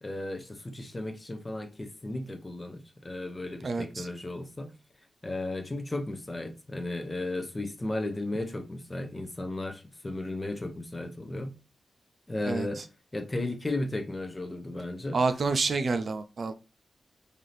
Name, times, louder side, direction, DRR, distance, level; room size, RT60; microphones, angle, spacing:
voice 1, 0.0-4.7 5.2-11.5 12.3-12.8 13.1-15.2, left 2 dB, 20° left, 0.6 m, -35 dB
voice 2, 3.6-4.1 12.5-12.7 15.1-16.5, right 4 dB, 50° right, 0.4 m, -28 dB
4.0 x 2.7 x 3.1 m
wide cardioid pair, 150°, 0 cm